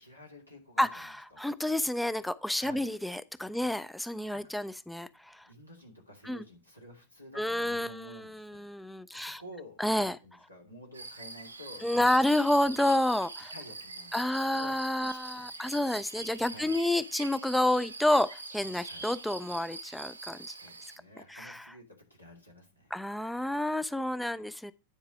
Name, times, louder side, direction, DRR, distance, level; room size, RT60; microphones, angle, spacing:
voice 1, 0.0-1.4 2.5-2.9 3.5-3.7 4.3-4.5 5.5-8.6 9.1-12.3 13.5-14.7 15.0-15.8 16.5-16.8 18.8-19.1 20.5-23.0, left 1 dB, 90° left, 2.5 m, -51 dB
voice 2, 0.8-5.4 6.2-6.4 7.4-9.4 9.8-10.2 11.8-13.5 14.1-20.5 21.3-21.6 22.9-24.7, left 1 dB, 5° left, 0.4 m, -29 dB
sound 1, 10.9-21.0, right 3 dB, 80° right, 1.0 m, -44 dB
9.9 x 4.7 x 5.8 m
figure-of-eight pair, 90°, 0 cm